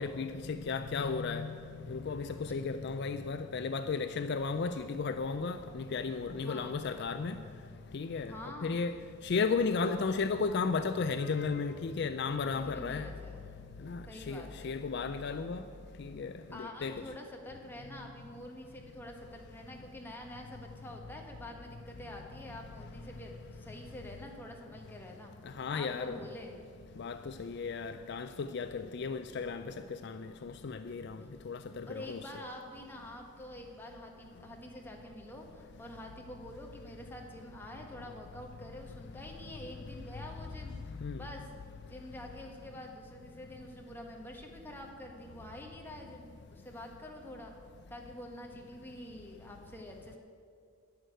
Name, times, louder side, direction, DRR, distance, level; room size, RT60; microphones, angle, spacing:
voice 1, 0.0-1.5 1.9-7.3 7.9-8.3 8.6-8.9 9.2-13.1 13.9-14.0 14.3-15.6 16.0-16.9 25.6-26.2 27.0-29.6 30.0-31.2 31.5-32.2 41.0-41.2, left 4 dB, 55° left, 0.4 m, -34 dB
voice 2, 6.4-6.8 8.2-8.8 12.5-13.4 14.1-14.7 16.5-25.3 25.7-26.7 31.9-40.8 41.2-41.5 41.8-47.5 47.9-50.2, left 1 dB, 10° left, 1.3 m, -47 dB
11.0 x 6.4 x 9.1 m
head